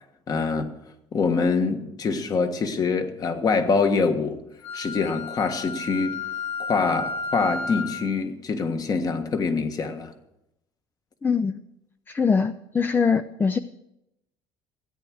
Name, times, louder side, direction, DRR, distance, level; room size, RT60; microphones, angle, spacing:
voice 1, 0.3-0.7 1.1-4.4 4.7-6.2 6.6-10.1, left 4 dB, 35° left, 7 dB, 1.5 m, -25 dB
Wind instrument woodwind instrument, 4.6-8.0, left 3 dB, 60° left, 5.5 m, -32 dB
voice 2, 11.2-11.6 12.1-13.6, left 5 dB, 20° left, 12 dB, 0.4 m, -22 dB
16.0 x 9.2 x 6.3 m, 0.85 s
cardioid pair, 125°, 11 cm